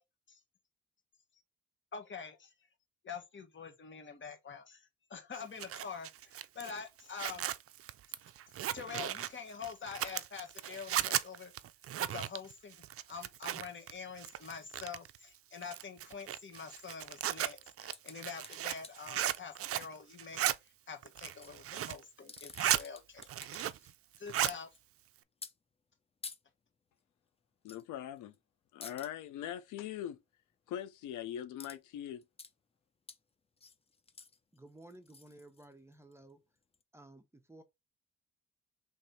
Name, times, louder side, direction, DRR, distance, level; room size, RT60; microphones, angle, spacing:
voice 1, 1.9-2.5 3.0-7.5 8.7-11.5 12.0-12.8 13.1-20.5 20.9-23.2 24.2-24.7, left 6 dB, 40° left, 1.3 m, -46 dB
Zipper (clothing), 5.3-13.9 14.2-15.2 15.6-19.9 20.2-20.6 21.0-22.0 22.4-22.8 23.2-23.9 24.2-24.6, right 12 dB, 50° right, 0.4 m, -36 dB
sound 1, 17.9-19.4 21.2-21.5 22.1-23.9 24.2-24.8 25.4-25.5 26.2-26.4 27.7-27.8 28.2-28.4 28.8-29.1 31.6-31.8 32.1-32.5 33.1-33.2 33.6-36.1 36.7-36.8, left 4 dB, 20° left, 0.5 m, -50 dB
voice 2, 27.6-28.3 28.7-30.2 30.7-32.2, left 10 dB, 85° left, 0.6 m, -41 dB
voice 3, 34.5-36.4 36.9-37.6, right 1 dB, 10° right, 0.8 m, -55 dB
3.4 x 3.3 x 4.1 m
cardioid pair, 90°, 30 cm